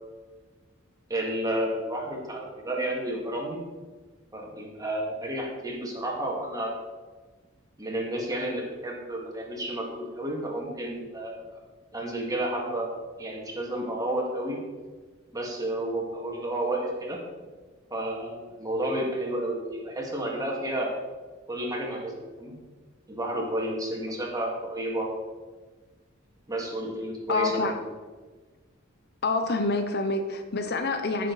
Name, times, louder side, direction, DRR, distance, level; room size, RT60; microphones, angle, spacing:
voice 1, 1.1-3.6 4.3-6.8 7.8-11.4 11.9-14.6 15.3-17.2 17.9-20.9 21.5-22.6 23.1-25.1 26.5-27.7, right 1 dB, 20° right, -1 dB, 2.0 m, -31 dB
voice 2, 27.3-27.8 29.2-31.3, left 3 dB, 50° left, 7 dB, 0.8 m, -27 dB
14.0 x 6.5 x 4.1 m, 1.3 s
head